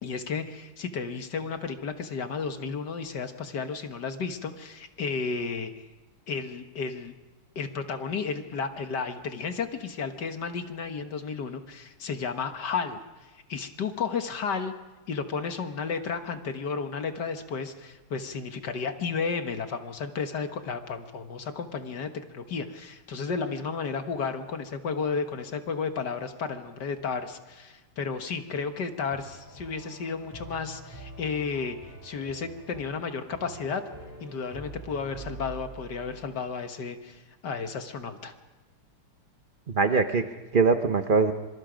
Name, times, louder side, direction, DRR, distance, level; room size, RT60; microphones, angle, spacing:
voice 1, 0.0-5.7 6.3-7.1 7.6-14.7 15.1-33.8 34.2-38.3, left 5 dB, 55° left, 7 dB, 1.8 m, -33 dB
sound 1, 29.1-36.3, right 2 dB, 10° right, 6.4 m, -45 dB
voice 2, 39.7-41.3, right 4 dB, 50° right, 8 dB, 0.6 m, -23 dB
26.0 x 25.5 x 5.1 m, 1.2 s
omnidirectional pair, 2.4 m